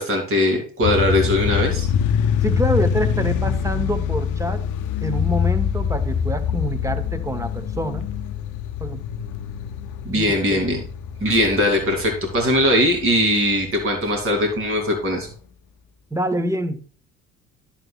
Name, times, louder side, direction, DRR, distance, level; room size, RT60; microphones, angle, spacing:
voice 1, 0.0-1.9 10.0-10.8 11.2-15.3, left 1 dB, 35° right, 2 dB, 2.7 m, -20 dB
sound 1, 0.8-13.9, left 7 dB, 50° left, 0.7 m, -25 dB
voice 2, 2.4-4.6 5.0-8.1 8.8-9.0 10.1-10.6 16.1-16.8, right 1 dB, 10° right, 7 dB, 1.0 m, -26 dB
11.0 x 7.1 x 2.3 m, 0.43 s
figure-of-eight pair, 55°, 39 cm